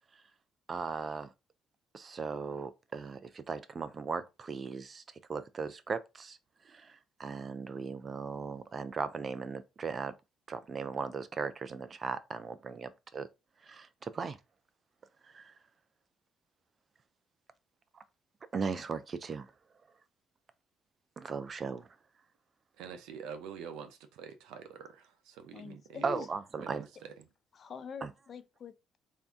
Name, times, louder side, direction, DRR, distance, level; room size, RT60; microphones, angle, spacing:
voice 1, 0.7-1.3 1.9-5.0 5.3-6.4 6.7-10.1 10.5-13.3 13.6-14.4 15.3-15.5 18.5-19.5 21.2-21.9 26.0-26.9 28.0-28.1, right 5 dB, 40° right, 0.5 m, -37 dB
voice 2, 22.8-26.3 26.6-27.1, right 7 dB, 85° right, 0.7 m, -46 dB
voice 3, 25.5-26.3 27.5-29.0, left 6 dB, 50° left, 0.6 m, -45 dB
3.5 x 2.7 x 3.5 m
cardioid pair, 85°, 0 cm